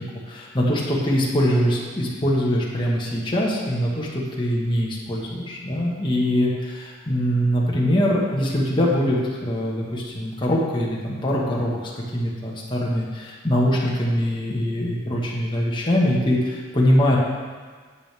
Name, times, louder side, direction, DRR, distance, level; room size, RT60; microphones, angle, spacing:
voice 1, 0.0-11.8 12.1-17.2, equal, 25° left, -4 dB, 1.4 m, -23 dB
9.7 x 8.3 x 3.4 m, 1.5 s
head